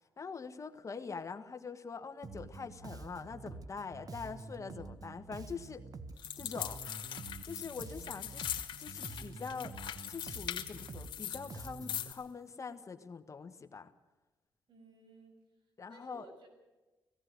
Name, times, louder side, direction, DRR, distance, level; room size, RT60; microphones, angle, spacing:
voice 1, 0.2-5.8 6.3-6.8 7.4-9.7 10.1-13.9 15.8-16.2, left 5 dB, 40° left, 8 dB, 1.5 m, -44 dB
Bass guitar, 2.2-12.1, right 3 dB, 50° right, 1.3 m, -48 dB
sound 1, 6.2-12.2, left 10 dB, 90° left, 1.9 m, -41 dB
voice 2, 14.7-15.4 15.9-16.5, right 3 dB, 75° right, 4 dB, 6.3 m, -57 dB
18.0 x 16.5 x 9.5 m, 1.1 s
cardioid pair, 95°, 8 cm